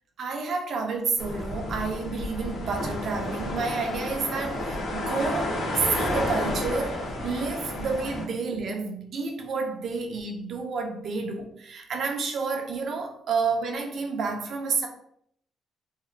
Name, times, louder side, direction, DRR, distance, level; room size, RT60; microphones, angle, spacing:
voice 1, 0.2-14.9, right 4 dB, 60° right, 3 dB, 0.7 m, -30 dB
sound 1, 1.2-8.2, left 1 dB, 75° left, 1.2 m, -31 dB
3.7 x 2.0 x 3.0 m, 0.68 s
cardioid pair, 90°, 0 cm